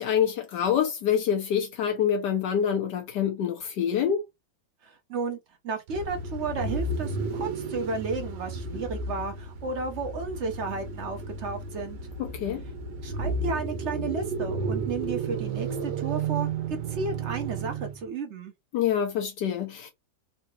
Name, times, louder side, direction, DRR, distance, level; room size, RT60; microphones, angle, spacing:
voice 1, 0.0-4.2 12.2-12.6 18.7-19.9, left 8 dB, 75° left, 1.3 m, -26 dB
voice 2, 4.8-5.4 5.6-12.0 13.0-18.5, right 4 dB, 50° right, 0.9 m, -33 dB
sound 1, 5.9-18.1, right 4 dB, 75° right, 1.4 m, -33 dB
3.8 x 2.8 x 2.2 m
omnidirectional pair, 1.9 m